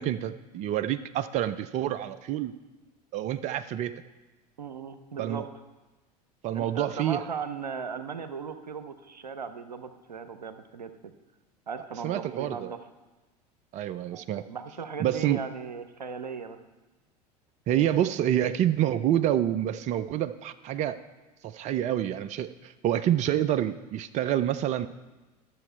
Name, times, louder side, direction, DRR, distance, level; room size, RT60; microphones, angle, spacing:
voice 1, 0.0-2.5 3.1-3.9 5.2-5.5 6.4-7.2 12.0-12.7 13.7-14.4 15.0-15.4 17.7-21.0 21.4-24.9, right 11 dB, 35° right, 13 dB, 0.4 m, -27 dB
voice 2, 4.6-5.5 6.5-11.1 11.7-12.8 14.1-16.6, right 6 dB, 85° right, 10 dB, 0.6 m, -37 dB
11.0 x 7.0 x 4.4 m, 1.1 s
figure-of-eight pair, 75°, 21 cm